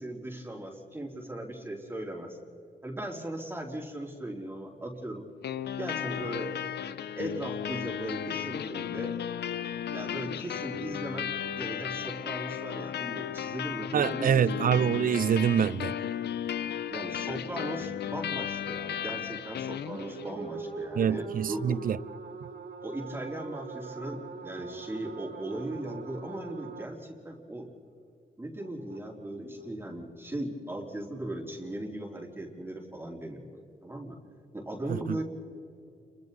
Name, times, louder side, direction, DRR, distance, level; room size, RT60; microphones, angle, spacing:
voice 1, 0.0-2.4 2.8-5.2 5.8-6.5 7.1-9.2 9.9-14.6 16.9-21.8 22.8-27.7 28.4-34.2 34.5-35.2, right 1 dB, 15° right, 3.3 m, -38 dB
sound 1, 5.4-20.4, left 9 dB, 75° left, 0.7 m, -35 dB
voice 2, 13.9-15.9 20.9-22.0 34.9-35.2, right 8 dB, 55° right, 0.5 m, -25 dB
sound 2, 19.9-26.9 28.6-29.7, right 4 dB, 80° right, 2.9 m, -42 dB
29.5 x 23.5 x 4.1 m
cardioid pair, 85°, 17 cm